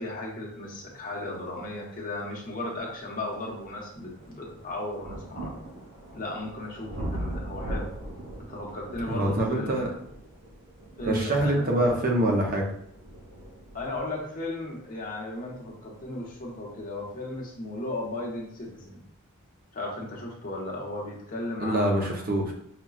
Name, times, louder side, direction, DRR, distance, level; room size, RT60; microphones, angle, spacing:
voice 1, 0.0-5.5 6.1-7.9 8.4-10.0 11.0-11.7 13.7-19.0 19.7-22.3, left 2 dB, 40° left, -3 dB, 1.0 m, -36 dB
sound 1, 2.1-2.2 2.8-17.5 18.4-18.5, right 1 dB, 80° right, 1.1 m, -41 dB
voice 2, 9.1-9.9 11.0-12.6 21.6-22.5, right 1 dB, 45° right, 0 dB, 0.7 m, -25 dB
5.8 x 2.2 x 2.3 m, 0.71 s
head